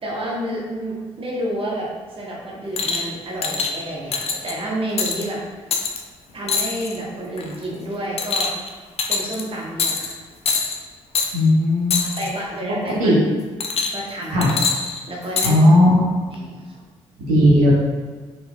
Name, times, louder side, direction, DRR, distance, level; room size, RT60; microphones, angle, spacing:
voice 1, 0.0-1.8 2.1-5.4 6.3-8.5 9.1-10.2 12.2-13.1 13.9-14.5 15.1-15.6 16.3-16.8, right 1 dB, 35° right, -4 dB, 1.1 m, -29 dB
sound 1, 2.8-3.1 3.4-3.7 4.1-4.5 5.0-5.2 5.7-6.0 6.5-7.0 7.4-7.6 8.2-8.7 9.0-9.4 9.8-10.1 10.4-10.8 11.1-11.3 11.9-12.3 13.6-14.1 14.4-15.5 16.3-16.4, left 5 dB, 40° left, 0.6 m, -23 dB
voice 2, 11.3-12.2 12.8-13.2 14.3-14.5 15.4-16.0 17.3-17.7, left 1 dB, 65° right, -6 dB, 1.0 m, -15 dB
4.3 x 3.7 x 2.4 m, 1.4 s
figure-of-eight pair, 45°, 16 cm